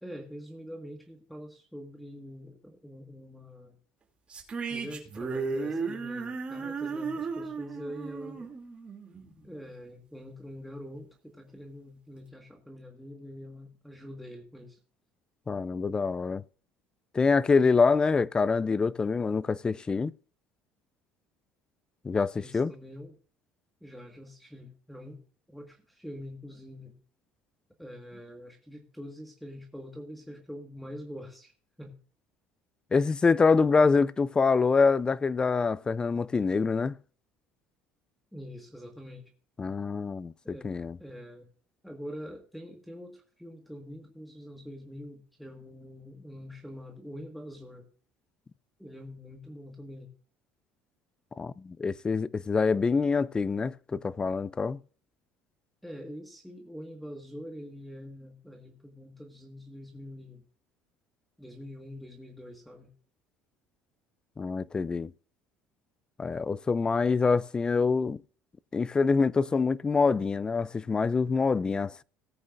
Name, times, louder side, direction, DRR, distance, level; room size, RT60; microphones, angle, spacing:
voice 1, 0.0-3.8 4.7-8.5 9.4-14.8 22.3-23.2 23.8-25.2 25.5-26.9 27.8-31.5 31.8-31.9 38.3-39.3 40.4-40.7 41.0-41.5 41.8-47.9 48.8-50.1 55.8-60.4 61.4-62.9, equal, ahead, 1.6 m, -44 dB
sound 1, 4.3-9.7, right 4 dB, 25° right, 2.7 m, -35 dB
voice 2, 15.5-16.4 17.1-20.1 22.0-22.7 32.9-36.9 39.6-40.3 40.6-41.0 51.4-54.8 64.4-65.1 66.2-68.2 68.7-72.0, left 4 dB, 20° left, 0.4 m, -25 dB
18.0 x 8.7 x 2.5 m
cardioid pair, 135°, 5 cm